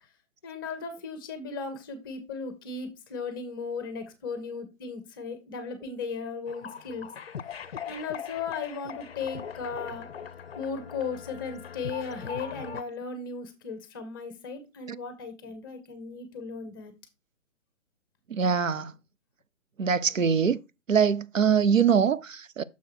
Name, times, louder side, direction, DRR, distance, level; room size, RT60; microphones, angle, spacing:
voice 1, 0.4-7.1 7.8-10.1 10.5-16.9, left 5 dB, 15° left, 0.7 m, -36 dB
sound 1, 6.5-12.8, left 7 dB, 50° left, 0.5 m, -40 dB
voice 2, 18.3-18.9 19.8-20.6 20.9-22.6, right 6 dB, 80° right, 0.6 m, -23 dB
6.8 x 4.7 x 4.5 m
figure-of-eight pair, 130°, 39 cm